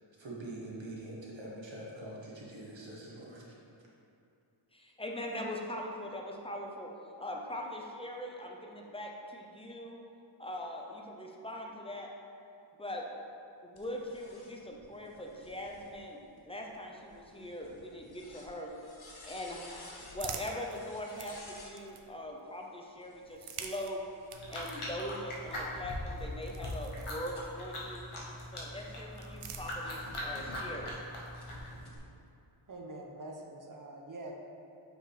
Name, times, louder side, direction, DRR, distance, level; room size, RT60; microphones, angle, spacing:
voice 1, 0.2-3.5, right 1 dB, 65° right, -4 dB, 1.3 m, -44 dB
voice 2, 4.7-6.9 7.2-10.0 10.4-12.1 12.8-13.0 13.6-16.2 16.5-18.7 19.2-24.0 24.5-28.0 28.5-31.0, left 1 dB, 10° left, 0 dB, 0.6 m, -41 dB
sound 1, 13.8-21.8 22.9-25.3 25.8-30.9 31.3-32.0, left 2 dB, 50° left, 1.0 m, -56 dB
sound 2, 19.5-22.4 23.2-27.8 28.8-30.3, right 6 dB, 85° right, 0.6 m, -48 dB
sound 3, 24.3-31.8, left 1 dB, 80° left, 1.2 m, -41 dB
voice 3, 32.7-34.3, right 2 dB, 40° right, 1 dB, 0.8 m, -45 dB
6.1 x 5.0 x 3.3 m, 2.7 s
wide cardioid pair, 95°, 50 cm